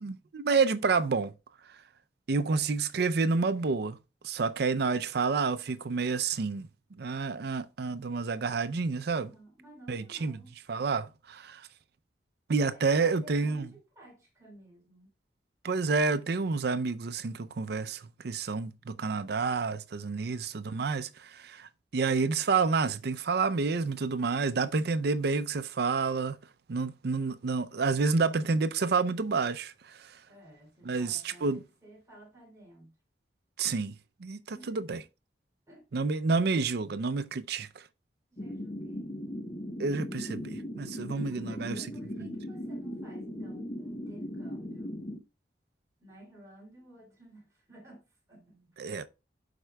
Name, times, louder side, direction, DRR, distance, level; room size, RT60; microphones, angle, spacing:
voice 1, 0.0-1.3 1.6-1.8 2.3-4.0 4.2-9.3 9.9-10.4 10.7-11.7 12.5-13.7 15.6-26.4 26.7-30.2 30.8-31.6 33.6-35.0 35.9-37.9 39.8-41.8 42.2-42.3 48.8-49.1, right 4 dB, 65° right, 0.5 m, -29 dB
voice 2, 9.1-10.5 12.7-15.1 30.2-32.9 34.5-35.0 35.7-36.1 38.3-39.2 41.3-45.0 46.0-48.8, right 1 dB, 20° right, 3.7 m, -54 dB
sound 1, 38.4-45.2, equal, 30° left, 0.8 m, -38 dB
11.5 x 4.4 x 2.3 m
head